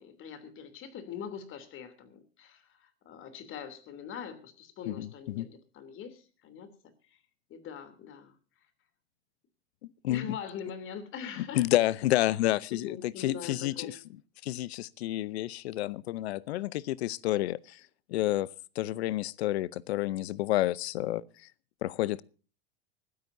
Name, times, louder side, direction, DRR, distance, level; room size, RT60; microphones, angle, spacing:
voice 1, 0.0-7.2 7.5-8.3 10.1-11.6 12.7-14.0, left 7 dB, 40° left, 3.2 m, -43 dB
voice 2, 4.9-5.5 9.8-10.3 11.4-13.9 14.4-17.8 18.1-21.2 21.8-22.2, left 15 dB, 85° left, 0.8 m, -30 dB
25.0 x 13.0 x 2.7 m
supercardioid pair, 120°, 31 cm